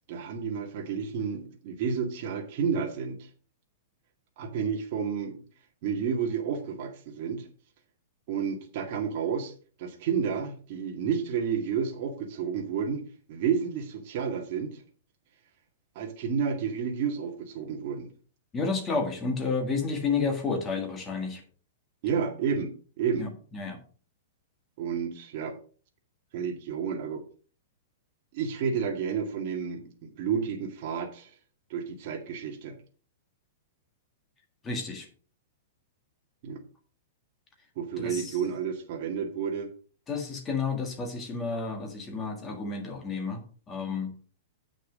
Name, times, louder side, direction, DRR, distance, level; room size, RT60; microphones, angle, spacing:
voice 1, 0.1-3.3 4.4-5.4 5.8-7.5 8.3-9.5 9.8-14.8 16.0-18.1 22.0-23.3 24.8-25.6 26.3-27.2 28.3-31.3 31.7-32.8 36.4-36.6 37.8-39.7, right 7 dB, 40° right, 1 dB, 2.0 m, -31 dB
voice 2, 18.5-21.4 23.2-23.8 34.6-35.1 38.0-38.4 40.1-44.1, left 4 dB, 15° left, 4 dB, 1.8 m, -31 dB
8.5 x 6.5 x 5.2 m, 0.40 s
supercardioid pair, 170°, 0 cm